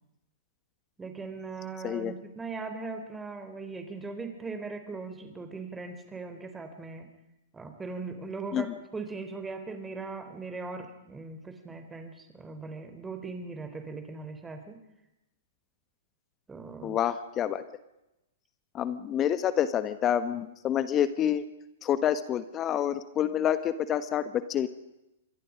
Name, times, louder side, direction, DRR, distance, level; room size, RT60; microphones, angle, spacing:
voice 1, 1.0-7.1 7.5-14.8 16.5-17.0, right 4 dB, 10° right, 7 dB, 4.1 m, -39 dB
voice 2, 16.8-17.6 18.7-21.4 21.8-24.7, left 10 dB, 30° left, 13 dB, 1.3 m, -28 dB
27.5 x 22.5 x 5.2 m, 0.92 s
hypercardioid pair, 115°, 0 cm